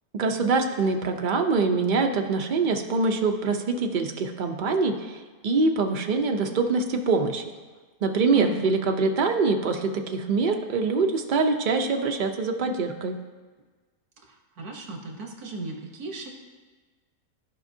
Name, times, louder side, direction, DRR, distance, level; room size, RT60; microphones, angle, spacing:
voice 1, 0.1-5.2 5.4-7.4 8.0-13.1, right 4 dB, 55° right, 4 dB, 0.5 m, -24 dB
voice 2, 14.2-16.3, right 3 dB, 85° right, 2 dB, 1.6 m, -35 dB
14.0 x 5.0 x 2.7 m, 1.4 s
omnidirectional pair, 1.6 m